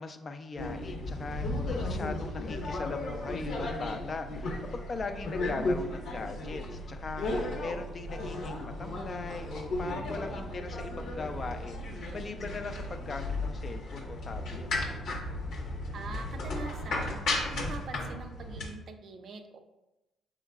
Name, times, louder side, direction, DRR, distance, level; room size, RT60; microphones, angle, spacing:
voice 1, 0.0-14.7, left 4 dB, 45° left, 7 dB, 0.4 m, -40 dB
sound 1, 0.6-18.7, left 2 dB, 75° left, 0.8 m, -35 dB
voice 2, 15.9-19.6, right 4 dB, 65° right, 6 dB, 0.5 m, -44 dB
5.4 x 3.6 x 2.4 m, 0.97 s
supercardioid pair, 70°, 0 cm